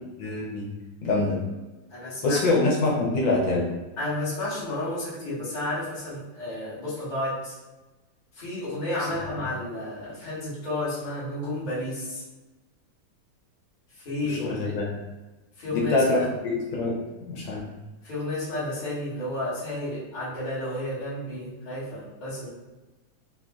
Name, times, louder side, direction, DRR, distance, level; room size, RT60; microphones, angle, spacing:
voice 1, 0.2-0.7 1.0-1.4 2.2-3.7 14.3-14.9 15.7-17.7, left 2 dB, 80° left, -3 dB, 1.4 m, -25 dB
voice 2, 1.9-2.4 4.0-7.6 8.3-12.2 13.9-14.7 15.6-15.9 18.0-22.5, left 1 dB, 30° left, -10 dB, 1.1 m, -31 dB
3.5 x 2.5 x 2.3 m, 1.1 s
omnidirectional pair, 2.0 m